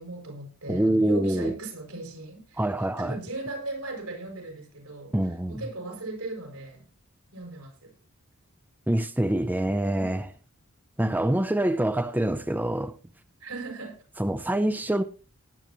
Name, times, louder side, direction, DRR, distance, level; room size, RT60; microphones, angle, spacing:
voice 1, 0.0-5.1 5.5-6.9 7.3-7.9 9.8-10.0 13.4-14.0, right 2 dB, 85° right, 7.0 m, -37 dB
voice 2, 0.7-1.5 2.6-3.2 5.1-5.6 8.9-10.3 11.0-13.0 14.2-15.0, right 1 dB, 10° right, 0.5 m, -25 dB
18.5 x 10.5 x 3.0 m
head